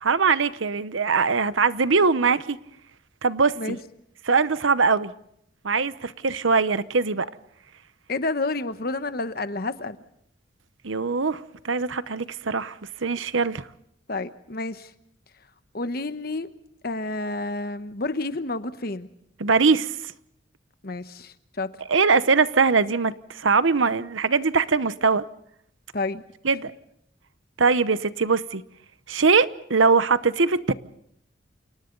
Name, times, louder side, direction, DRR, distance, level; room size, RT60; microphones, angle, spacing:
voice 1, 0.0-2.6 3.2-3.8 4.2-5.1 5.6-7.3 10.8-12.7 13.0-13.6 19.4-19.9 21.9-25.2 26.4-26.7 27.6-28.6 29.1-30.7, right 4 dB, 80° right, 0.9 m, -21 dB
voice 2, 8.1-10.0 14.1-14.9 15.7-16.5 16.8-19.1 20.8-21.7 25.9-26.2, left 2 dB, 50° left, 1.1 m, -29 dB
29.0 x 27.5 x 3.9 m
head